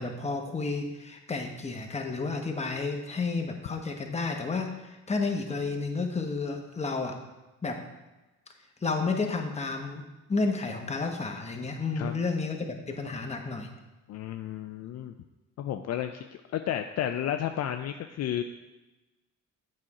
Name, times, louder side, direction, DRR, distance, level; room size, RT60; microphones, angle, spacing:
voice 1, 0.0-7.2 7.6-7.8 8.8-13.7, left 3 dB, 20° left, 3 dB, 1.0 m, -31 dB
voice 2, 14.1-15.1 15.6-16.2 16.5-18.4, left 10 dB, 60° left, 7 dB, 0.4 m, -32 dB
7.6 x 4.3 x 4.8 m, 1.1 s
cardioid pair, 90°, 30 cm